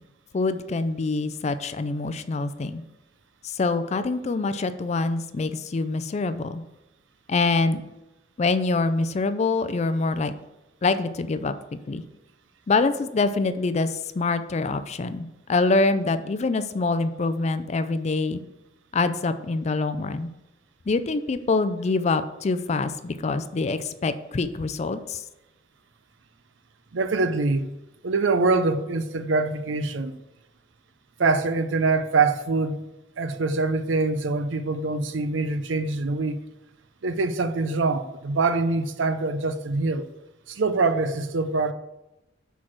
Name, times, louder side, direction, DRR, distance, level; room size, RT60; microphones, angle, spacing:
voice 1, 0.3-2.8 3.4-6.6 7.3-7.8 8.4-10.3 10.8-11.5 11.9-12.0 12.7-18.4 18.9-20.3 20.9-25.2, left 3 dB, 35° left, 0.4 m, -25 dB
voice 2, 26.9-27.7 28.0-30.2 31.2-32.8 33.2-36.4 37.0-40.1 40.5-41.7, right 3 dB, 90° right, 0.6 m, -24 dB
6.4 x 4.6 x 5.9 m
head